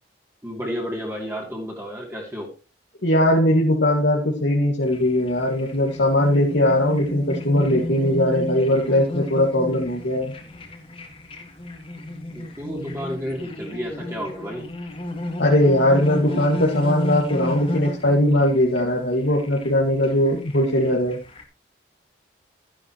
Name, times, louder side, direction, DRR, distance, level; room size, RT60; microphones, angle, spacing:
voice 1, 0.4-2.5 12.3-14.7, equal, 15° right, -1 dB, 2.8 m, -31 dB
voice 2, 3.0-10.3 15.4-21.2, left 1 dB, 75° left, -2 dB, 2.0 m, -20 dB
sound 1, 4.8-21.4, left 1 dB, 30° left, 2.0 m, -33 dB
12.5 x 10.5 x 3.1 m, 0.31 s
head